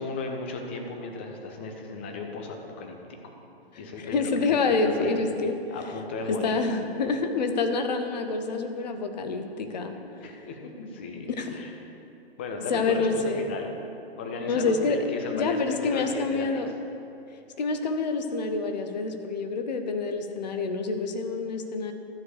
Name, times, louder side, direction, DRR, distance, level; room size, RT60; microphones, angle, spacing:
voice 1, 0.0-3.3 3.8-5.2 5.7-6.6 9.9-11.7 12.4-13.7 14.2-16.6, left 3 dB, 10° left, 3 dB, 0.4 m, -36 dB
voice 2, 4.0-5.6 6.3-10.0 11.4-11.6 12.7-13.5 14.4-15.0 15.3-16.7 17.6-21.9, left 4 dB, 45° left, 6 dB, 0.9 m, -27 dB
12.5 x 4.6 x 6.6 m, 2.7 s
figure-of-eight pair, 120°, 31 cm